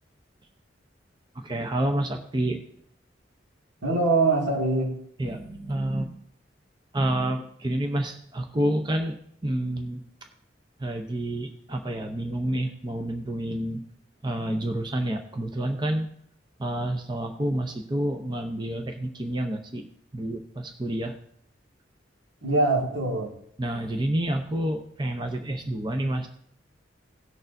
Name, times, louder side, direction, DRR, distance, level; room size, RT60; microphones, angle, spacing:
voice 1, 1.3-2.6 5.2-6.1 6.9-9.2 9.4-10.0 10.8-13.8 14.2-16.1 16.6-19.8 20.1-21.1 23.6-26.3, right 1 dB, 25° right, 5 dB, 0.7 m, -28 dB
voice 2, 3.8-5.0 22.4-23.4, right 2 dB, 80° right, -1 dB, 2.2 m, -23 dB
18.0 x 6.6 x 2.7 m, 0.66 s
head